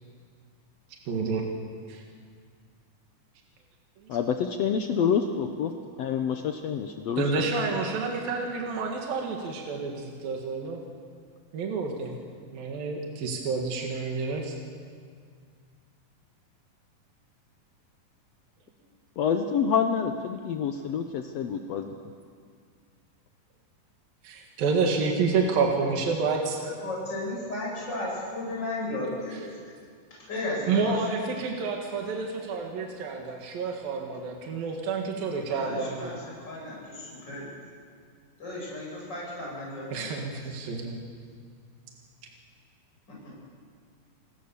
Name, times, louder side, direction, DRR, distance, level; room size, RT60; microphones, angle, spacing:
voice 1, 1.1-1.4 1.9-2.0 7.2-10.8 11.5-12.2 12.5-14.6 24.2-26.6 30.7-36.2 39.9-41.0, right 4 dB, 75° right, 1 dB, 3.7 m, -29 dB
voice 2, 4.1-5.7 6.0-7.2 19.2-21.9, left 7 dB, 80° left, 6 dB, 1.5 m, -27 dB
voice 3, 26.8-29.7 30.3-31.4 35.5-37.5 38.4-40.1, left 1 dB, 25° left, -4 dB, 8.6 m, -35 dB
29.5 x 20.0 x 7.1 m, 2.1 s
omnidirectional pair, 4.2 m